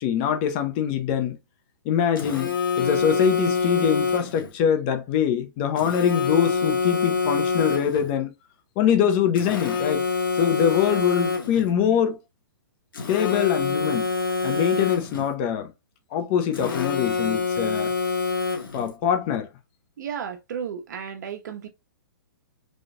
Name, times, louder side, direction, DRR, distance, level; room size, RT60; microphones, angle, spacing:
voice 1, 0.0-1.4 1.8-8.3 8.8-10.0 10.3-12.2 13.1-14.1 14.4-15.7 16.1-17.9 18.7-19.5, left 8 dB, 30° left, 0.8 m, -23 dB
Telephone, 2.2-4.5 5.8-8.1 9.4-11.7 12.9-15.3 16.5-18.9, left 4 dB, 85° left, 1.6 m, -26 dB
voice 2, 20.0-21.7, right 7 dB, 60° right, 1.1 m, -33 dB
4.2 x 3.1 x 2.5 m
hypercardioid pair, 160°, 11 cm